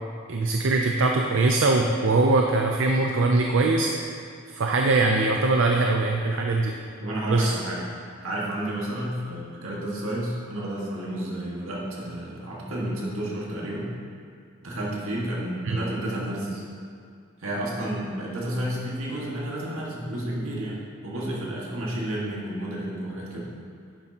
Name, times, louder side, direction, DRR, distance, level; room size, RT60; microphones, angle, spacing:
voice 1, 0.3-3.9 4.5-6.7 7.3-7.5 15.6-15.8, right 3 dB, 65° right, 2 dB, 0.5 m, -22 dB
voice 2, 7.0-7.8 8.2-13.9 14.6-16.6 17.4-23.5, right 1 dB, 80° right, -4 dB, 1.8 m, -31 dB
9.9 x 7.5 x 2.9 m, 2.2 s
head